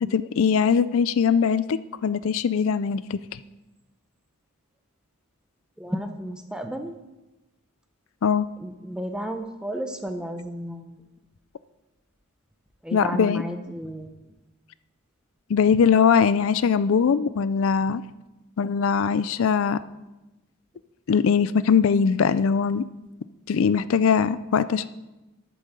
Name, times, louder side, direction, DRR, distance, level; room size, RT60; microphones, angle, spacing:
voice 1, 0.0-3.4 8.2-8.5 12.9-13.4 15.5-18.0 18.6-19.8 21.1-22.9 23.5-24.9, left 6 dB, 65° left, 15 dB, 0.4 m, -21 dB
voice 2, 5.8-7.0 8.6-11.0 12.8-14.3, equal, 5° right, 6 dB, 0.8 m, -33 dB
9.2 x 8.5 x 6.6 m, 1.0 s
head